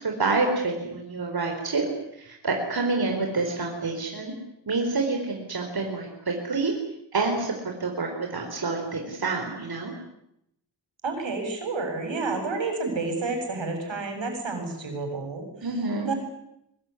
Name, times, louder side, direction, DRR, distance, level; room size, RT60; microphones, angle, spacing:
voice 1, 0.0-4.3 4.7-6.7 7.1-7.5 7.8-9.9 15.6-16.1, right 3 dB, 55° right, 2 dB, 4.5 m, -27 dB
voice 2, 11.0-15.5 16.1-16.2, right 3 dB, 85° right, 4 dB, 7.9 m, -30 dB
23.5 x 22.5 x 9.8 m, 0.80 s
wide cardioid pair, 125°, 44 cm